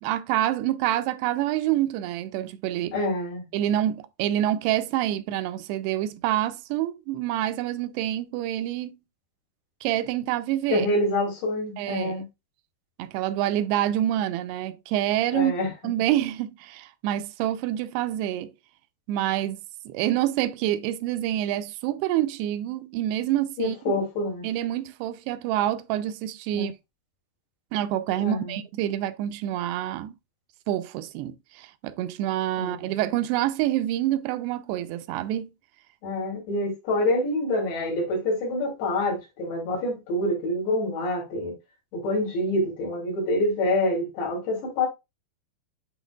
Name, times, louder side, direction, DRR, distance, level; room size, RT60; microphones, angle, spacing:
voice 1, 0.0-3.0 3.5-8.9 9.8-10.9 11.8-12.2 13.0-15.5 15.8-18.5 19.1-19.6 19.9-23.8 24.4-26.7 27.7-30.1 30.7-35.5, right 12 dB, 85° right, 2.7 m, -27 dB
voice 2, 2.9-3.5 10.7-12.2 15.3-15.7 23.6-24.5 26.5-26.7 28.2-28.5 32.6-32.8 36.0-41.6 41.9-44.9, left 1 dB, 90° left, 5.1 m, -26 dB
10.0 x 4.0 x 2.3 m
omnidirectional pair, 4.7 m